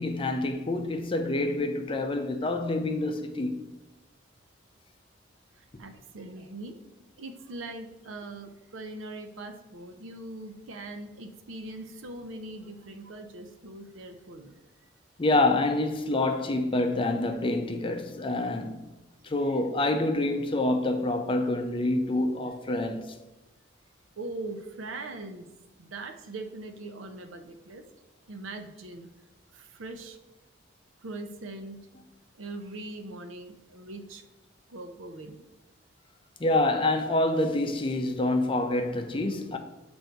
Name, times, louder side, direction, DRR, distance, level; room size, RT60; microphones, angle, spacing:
voice 1, 0.0-3.6 15.2-18.8 19.2-23.1 36.4-39.6, left 2 dB, 25° left, 0.4 m, -27 dB
voice 2, 5.5-6.8 7.2-14.5 19.5-19.6 24.2-25.5 25.8-27.9 28.3-29.1 29.5-30.2 31.0-31.9 32.4-34.2 34.7-35.4, right 2 dB, 85° right, 0.6 m, -41 dB
7.9 x 2.6 x 4.5 m
head